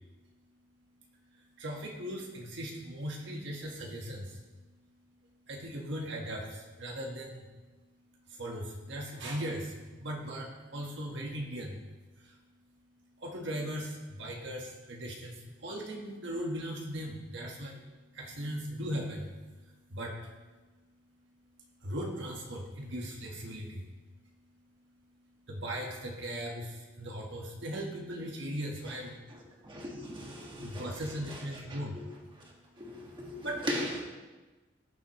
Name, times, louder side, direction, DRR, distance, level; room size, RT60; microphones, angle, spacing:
voice 1, 1.6-4.4 5.5-7.5 8.3-11.8 12.2-12.4 13.2-17.8 18.1-19.3 19.9-20.3 21.8-23.9 25.5-29.2 30.6-32.0 33.4-33.7, equal, 65° right, -1 dB, 1.5 m, -38 dB
voice 2, 29.6-30.9 31.3-31.4 31.7-32.0 32.8-34.0, equal, 25° right, -2 dB, 1.9 m, -38 dB
18.0 x 7.3 x 3.1 m, 1.2 s
head